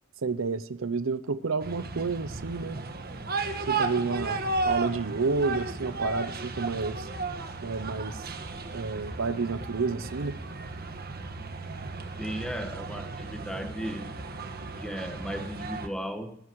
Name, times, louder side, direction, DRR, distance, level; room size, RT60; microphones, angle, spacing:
voice 1, 0.2-2.8 3.7-7.1 7.6-8.3 8.7-10.4, right 4 dB, 75° right, 14 dB, 0.7 m, -30 dB
sound 1, 1.6-15.9, right 3 dB, 50° right, 1.5 m, -34 dB
voice 2, 12.2-14.1 14.8-16.4, equal, 5° left, 5 dB, 1.6 m, -36 dB
19.0 x 15.5 x 3.1 m, 0.70 s
head